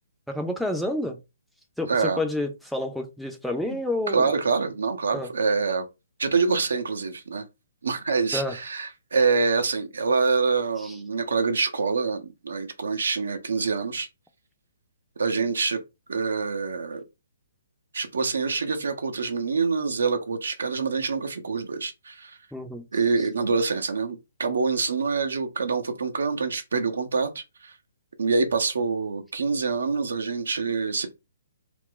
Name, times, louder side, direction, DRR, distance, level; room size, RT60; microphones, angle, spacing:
voice 1, 0.3-1.2 1.8-4.3 5.1-5.3 8.3-8.5 22.5-22.9, left 1 dB, ahead, 0.4 m, -29 dB
voice 2, 1.9-2.2 3.7-3.8 4.1-5.8 6.2-7.4 7.8-14.1 15.2-15.8 16.1-17.0 17.9-22.4 22.9-27.8 28.2-31.1, right 4 dB, 70° right, 0.6 m, -26 dB
2.4 x 2.2 x 3.7 m
figure-of-eight pair, 135°, 0 cm